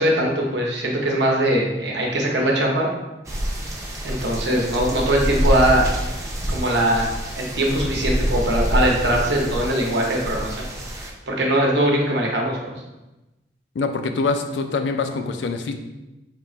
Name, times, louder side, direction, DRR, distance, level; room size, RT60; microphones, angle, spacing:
voice 1, 0.0-2.9 4.0-5.8 6.5-7.1 7.4-10.5 11.3-12.6, right 1 dB, 75° right, -1 dB, 0.8 m, -21 dB
sound 1, 3.2-11.1, equal, 15° right, 0.5 m, -26 dB
voice 2, 13.7-15.7, left 4 dB, 80° left, 7 dB, 0.4 m, -24 dB
3.4 x 2.4 x 4.2 m, 1.0 s
head